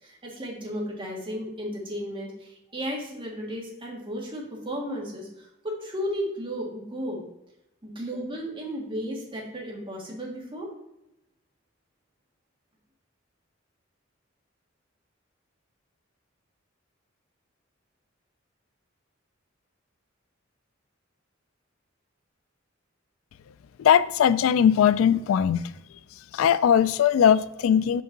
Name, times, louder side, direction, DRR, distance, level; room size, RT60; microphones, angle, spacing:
voice 1, 0.0-7.2 7.8-10.7, equal, 25° right, -2 dB, 1.6 m, -34 dB
voice 2, 23.8-25.7 26.3-28.0, left 8 dB, 90° left, 16 dB, 0.3 m, -20 dB
5.4 x 5.4 x 3.8 m, 0.86 s
head